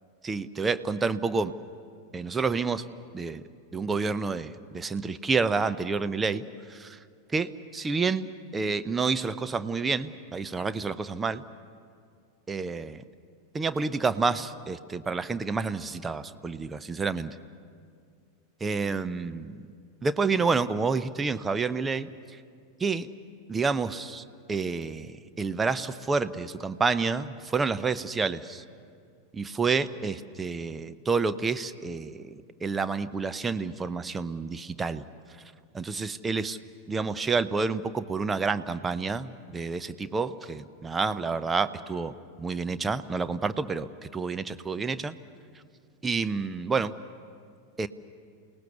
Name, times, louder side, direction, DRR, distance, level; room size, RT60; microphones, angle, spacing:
voice 1, 0.2-1.5 2.1-2.8 3.1-3.4 3.7-7.0 7.3-11.4 12.5-13.0 13.5-17.4 18.6-19.7 20.0-22.4 22.8-23.1 23.5-28.6 29.3-35.0 35.7-36.6 36.9-45.1 46.0-46.9 47.8-47.9, right 4 dB, 15° right, 12 dB, 0.7 m, -29 dB
28.5 x 18.5 x 7.1 m, 2.2 s
figure-of-eight pair, 90°, 0 cm